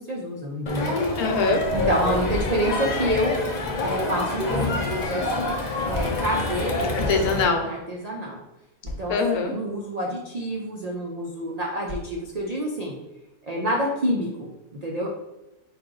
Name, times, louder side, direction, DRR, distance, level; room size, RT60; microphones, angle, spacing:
voice 1, 0.0-1.0 1.7-3.3 3.8-5.5 5.8-7.2 7.7-8.4 9.0-13.0 13.4-15.1, equal, 75° right, -2 dB, 0.3 m, -28 dB
Crowd, 0.7-7.4, left 2 dB, 50° left, 0.5 m, -27 dB
voice 2, 1.2-1.6 6.9-7.7 9.1-9.5, left 4 dB, 85° left, 4 dB, 1.2 m, -23 dB
sound 1, 2.3-3.0 3.8-4.8 5.9-6.5 7.4-7.6 7.8-7.9 8.8-9.5 10.4-10.6 11.8-12.5, left 1 dB, 30° right, 0.6 m, -38 dB
4.7 x 2.6 x 3.7 m, 0.97 s
omnidirectional pair, 1.5 m